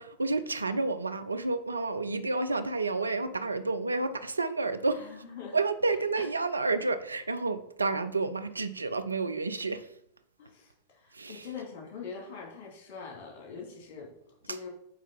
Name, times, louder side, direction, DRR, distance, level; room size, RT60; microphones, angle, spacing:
voice 1, 0.0-5.1 5.5-9.9 11.1-11.5, right 3 dB, 80° right, 0.5 m, -30 dB
voice 2, 4.9-5.6 6.2-6.3 10.4-14.1 14.4-14.7, left 5 dB, 45° left, 2.7 m, -43 dB
8.6 x 3.6 x 5.4 m
figure-of-eight pair, 90°, 0 cm